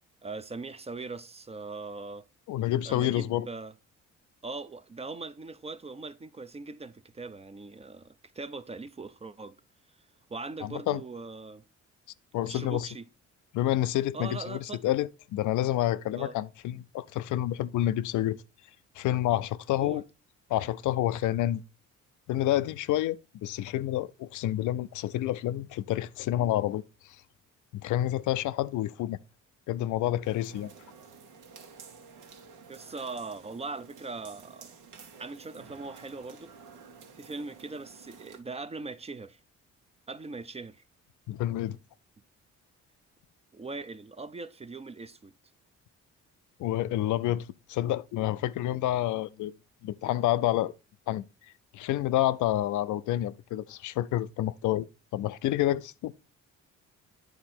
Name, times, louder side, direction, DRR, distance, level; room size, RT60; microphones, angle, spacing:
voice 1, 0.2-2.3 2.9-3.7 4.4-9.6 10.3-11.6 12.5-13.0 14.1-14.9 16.2-16.4 19.8-20.0 32.7-34.7 35.2-36.5 37.2-39.4 40.1-40.8 43.5-45.3, right 3 dB, 20° right, 0.5 m, -40 dB
voice 2, 2.5-3.5 10.6-11.0 12.3-12.9 13.5-18.4 19.0-20.0 20.5-21.6 22.3-26.8 27.7-29.2 29.7-30.7 41.3-41.8 46.6-49.5 49.8-50.7 51.1-51.2 51.7-54.9 55.1-56.1, left 13 dB, 75° left, 0.5 m, -28 dB
sound 1, 30.2-38.4, right 5 dB, 85° right, 1.3 m, -51 dB
9.3 x 3.9 x 4.3 m
cardioid pair, 90°, 30 cm